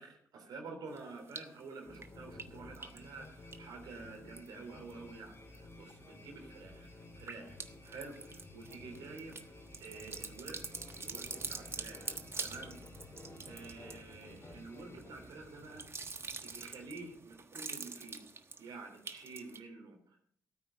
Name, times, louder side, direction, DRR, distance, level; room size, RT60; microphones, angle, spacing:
voice 1, 0.0-12.8 13.5-15.9 16.4-18.2 18.6-20.3, right 3 dB, 80° right, 3 dB, 3.3 m, -49 dB
sound 1, 1.0-1.6 1.9-4.9 5.3-5.8 6.2-19.6, right 4 dB, 40° right, 1.3 m, -46 dB
sound 2, 1.8-17.4, left 2 dB, 40° left, 3.4 m, -54 dB
13.5 x 9.2 x 5.8 m, 0.63 s
supercardioid pair, 55°, 7 cm